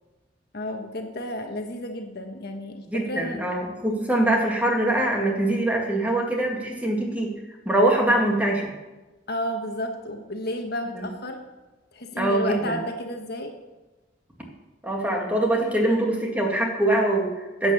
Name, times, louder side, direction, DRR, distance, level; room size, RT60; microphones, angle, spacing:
voice 1, 0.5-3.4 9.3-11.4 11.9-13.5, left 1 dB, 55° left, 4 dB, 1.3 m, -32 dB
voice 2, 2.9-7.3 7.7-8.7 10.9-11.1 12.2-12.8 14.8-17.7, right 1 dB, 10° right, 0 dB, 2.1 m, -23 dB
11.5 x 8.3 x 7.0 m, 1.1 s
head